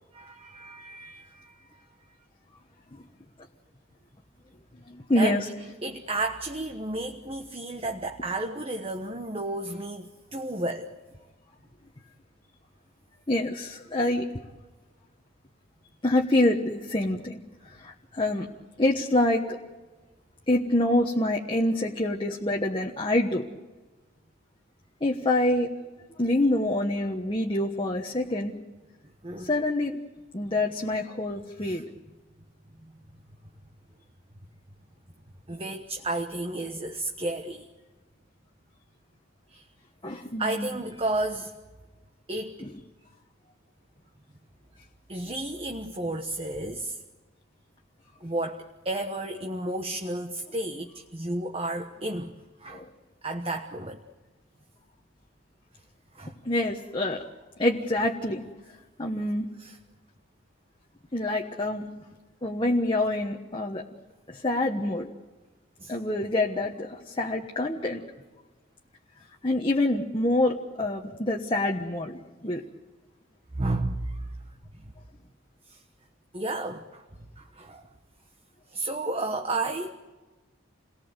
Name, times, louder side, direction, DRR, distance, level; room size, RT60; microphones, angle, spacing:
voice 1, 0.1-1.8 5.2-5.4 5.8-10.9 29.2-29.5 31.6-31.8 35.5-37.7 39.5-39.6 40.4-41.5 42.3-42.6 45.1-47.0 48.2-52.3 52.6-52.8 53.2-54.0 56.1-56.4 59.6-59.8 65.8-65.9 73.5-74.3 74.8-74.9 75.7-75.8 76.3-77.0 77.4-77.8 78.7-79.9, right 2 dB, 30° right, 4 dB, 1.2 m, -32 dB
voice 2, 4.9-5.5 13.3-14.3 16.0-17.4 17.6-18.5 18.8-19.6 20.5-23.4 25.0-25.7 26.2-28.6 29.4-30.0 30.3-31.8 40.0-40.7 42.6-42.7 52.7-52.9 56.4-57.2 57.6-58.4 59.0-59.5 61.1-61.9 62.4-63.8 64.3-65.1 65.9-68.0 69.4-72.6, left 1 dB, 25° left, 0 dB, 1.3 m, -26 dB
29.0 x 19.0 x 8.1 m, 1.2 s
head